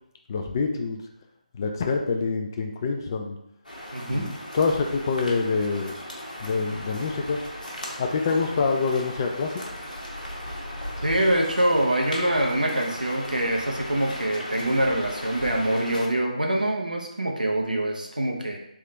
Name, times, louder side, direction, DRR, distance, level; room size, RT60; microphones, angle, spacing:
voice 1, 0.3-1.0 1.6-3.4 4.1-5.9 6.4-7.4 8.0-9.6, left 4 dB, 30° left, 3 dB, 0.3 m, -26 dB
sound 1, 3.6-16.1, equal, 85° left, 1.0 m, -37 dB
voice 2, 3.9-4.3 11.0-18.6, right 1 dB, 85° right, 1 dB, 0.7 m, -24 dB
3.5 x 2.7 x 3.3 m, 0.80 s
figure-of-eight pair, 150°, 4 cm